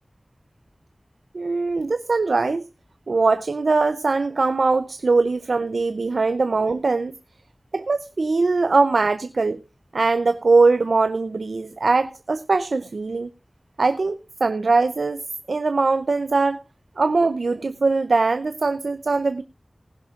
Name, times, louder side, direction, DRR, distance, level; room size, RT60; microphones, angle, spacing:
voice 1, 1.3-2.6 3.1-7.1 7.7-9.6 9.9-13.3 13.8-16.6 17.0-19.4, right 3 dB, 85° right, 0.5 m, -21 dB
19.0 x 11.0 x 2.4 m
wide cardioid pair, 55°, 0 cm